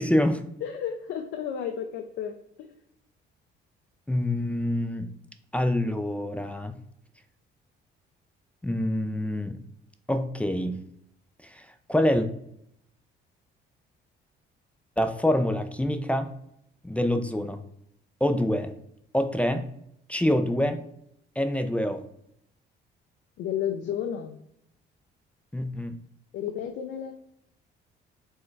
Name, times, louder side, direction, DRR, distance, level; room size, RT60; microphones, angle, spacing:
voice 1, 0.0-0.4 4.1-5.1 5.5-6.8 8.6-9.6 10.1-10.8 11.4-12.3 15.0-16.3 16.8-17.6 18.2-18.7 19.1-19.7 20.1-20.8 21.4-22.0 25.5-26.0, left 1 dB, 5° left, 8 dB, 0.3 m, -26 dB
voice 2, 0.6-2.7 23.4-24.4 26.3-27.1, left 9 dB, 75° left, 5 dB, 0.4 m, -32 dB
4.4 x 2.2 x 4.5 m, 0.74 s
cardioid pair, 100°, 20 cm